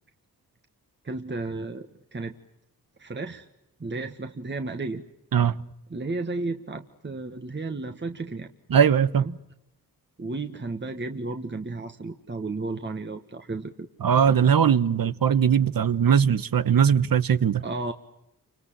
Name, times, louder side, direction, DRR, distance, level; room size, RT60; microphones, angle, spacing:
voice 1, 1.0-1.9 2.1-2.3 3.0-3.5 3.8-5.0 5.9-8.5 9.2-9.4 10.2-13.9 17.6-17.9, right 3 dB, 30° right, 1.7 m, -33 dB
voice 2, 8.7-9.3 14.0-17.6, right 8 dB, 65° right, 1.1 m, -20 dB
30.0 x 26.0 x 7.5 m
cardioid pair, 80°, 37 cm